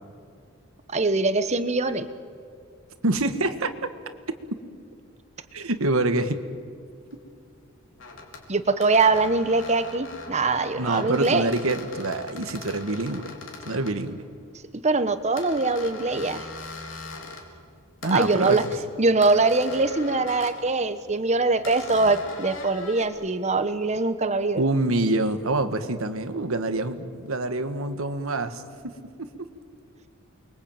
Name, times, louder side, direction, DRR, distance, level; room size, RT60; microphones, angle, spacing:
voice 1, 0.9-2.1 8.5-11.5 14.8-16.5 18.1-18.6 19.0-24.6, right 3 dB, 35° right, 11 dB, 1.2 m, -23 dB
voice 2, 3.0-3.7 5.5-6.4 10.7-13.3 13.6-14.2 18.0-18.6 24.6-28.9 29.2-29.3, right 2 dB, 80° right, 9 dB, 1.6 m, -26 dB
sound 1, 7.1-7.2 8.0-8.4 8.8-14.0 15.4-17.5 18.0-18.8 19.2-20.6 21.6-23.1, left 3 dB, 65° left, 4.0 m, -41 dB
29.0 x 22.5 x 8.9 m, 2.4 s
head